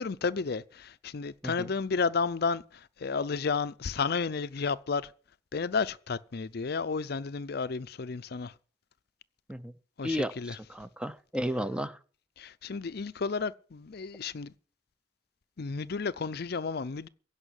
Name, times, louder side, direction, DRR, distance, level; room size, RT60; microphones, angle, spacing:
voice 1, 0.0-2.6 3.0-5.1 5.5-8.5 10.0-10.6 12.4-14.5 15.6-17.1, left 5 dB, 55° left, 0.5 m, -32 dB
voice 2, 10.0-12.0, equal, 5° right, 0.6 m, -33 dB
16.5 x 5.6 x 9.9 m
head